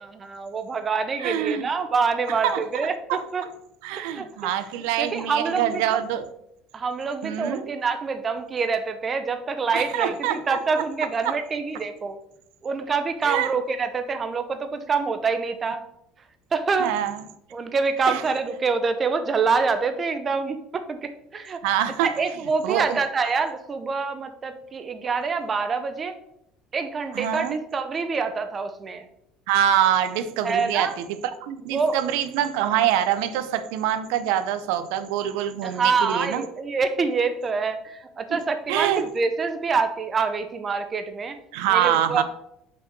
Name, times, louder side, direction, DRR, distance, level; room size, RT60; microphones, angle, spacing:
voice 1, 0.0-3.4 4.0-4.5 5.0-6.0 6.7-12.2 12.6-15.8 16.5-16.9 17.5-21.6 22.0-26.2 26.7-29.1 30.4-30.9 31.7-32.0 35.6-41.4 41.7-42.2, right 4 dB, 25° right, 9 dB, 0.7 m, -26 dB
voice 2, 1.2-1.7 2.4-2.6 3.1-3.2 3.8-6.3 7.2-7.6 9.7-10.8 13.2-13.5 16.8-17.2 18.1-18.2 21.6-22.1 22.6-23.0 27.1-27.6 29.5-30.9 31.4-36.4 38.3-38.4 38.7-39.1 41.5-42.2, right 10 dB, 85° right, 11 dB, 0.6 m, -25 dB
5.7 x 5.1 x 5.9 m, 0.77 s
cardioid pair, 155°, 0 cm